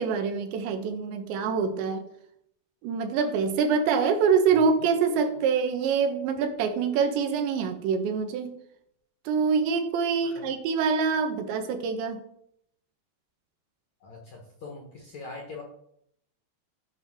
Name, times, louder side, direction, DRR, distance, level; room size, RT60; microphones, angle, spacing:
voice 1, 0.0-2.0 2.8-8.5 9.3-12.2, right 5 dB, 80° right, 7 dB, 3.4 m, -25 dB
voice 2, 14.0-15.6, left 3 dB, 60° left, 1 dB, 1.9 m, -42 dB
13.5 x 5.6 x 6.1 m, 0.73 s
omnidirectional pair, 5.2 m